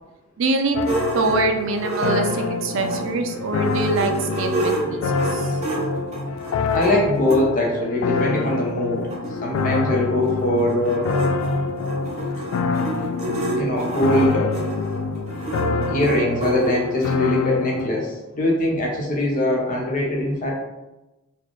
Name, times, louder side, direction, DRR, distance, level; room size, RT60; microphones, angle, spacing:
voice 1, 0.4-0.9 1.1-5.0 5.3-5.5, right 3 dB, 65° right, 5 dB, 0.4 m, -24 dB
sound 1, 0.7-17.9, left 4 dB, 80° left, 0.3 m, -26 dB
sound 2, 0.8-3.2 3.6-7.4 8.2-8.3 8.6-8.7 8.8-17.1, right 1 dB, 35° right, 0.8 m, -29 dB
voice 2, 6.7-9.0 9.4-11.1 13.6-14.6 15.9-20.5, left 1 dB, 40° left, -1 dB, 0.8 m, -22 dB
4.1 x 2.4 x 3.1 m, 1.0 s
head